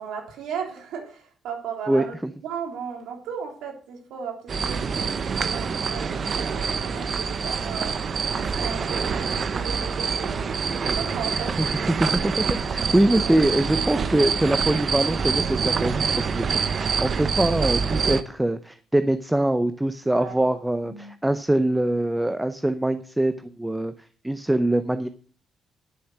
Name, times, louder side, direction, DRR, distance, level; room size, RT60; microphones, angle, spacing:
voice 1, 0.0-2.1 2.4-4.3 4.6-5.1 5.4-7.9 8.3-10.6 10.8-11.5 13.2-13.4 20.1-20.4 20.8-21.1, right 6 dB, 85° right, 2 dB, 3.5 m, -35 dB
voice 2, 1.9-2.3 11.3-23.9 24.2-25.1, right 1 dB, 10° right, 11 dB, 0.6 m, -23 dB
sound 1, 4.5-18.2, right 6 dB, 50° right, 0.9 m, -26 dB
11.0 x 7.0 x 6.1 m, 0.44 s
cardioid pair, 90°, 0 cm